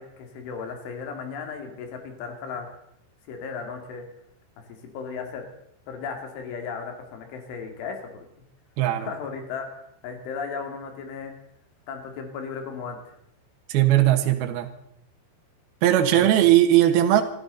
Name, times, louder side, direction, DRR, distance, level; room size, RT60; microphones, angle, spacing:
voice 1, 0.0-2.8 3.3-4.1 4.9-5.4 5.9-8.2 9.0-11.3 11.9-13.2 16.1-16.3, left 5 dB, 85° left, 4 dB, 4.9 m, -35 dB
voice 2, 8.8-9.1 13.7-14.7 15.8-17.2, right 13 dB, 65° right, 5 dB, 3.0 m, -19 dB
26.5 x 13.0 x 4.0 m, 0.73 s
omnidirectional pair, 5.4 m